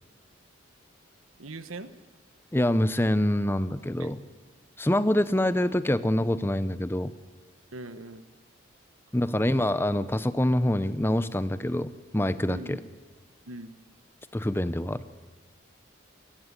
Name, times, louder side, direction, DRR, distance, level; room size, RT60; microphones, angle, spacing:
voice 1, 1.4-1.9 4.0-4.1 7.7-8.2 12.5-12.8 13.5-13.7, right 2 dB, 90° right, 12 dB, 1.3 m, -40 dB
voice 2, 2.5-4.2 4.8-7.1 9.1-12.8 14.3-15.0, left 1 dB, 10° left, 14 dB, 0.7 m, -25 dB
28.5 x 16.0 x 9.9 m, 1.4 s
head